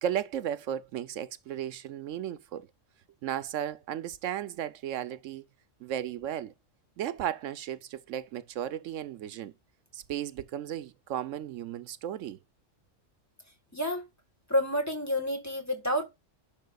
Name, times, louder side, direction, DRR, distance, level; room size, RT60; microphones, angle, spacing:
voice 1, 0.0-2.7 3.2-5.5 5.8-6.5 7.0-9.5 9.9-12.4, right 10 dB, 80° right, 1.0 m, -35 dB
voice 2, 13.7-14.0 14.5-16.0, equal, 15° left, 1.5 m, -29 dB
10.5 x 5.9 x 2.4 m
omnidirectional pair, 1.3 m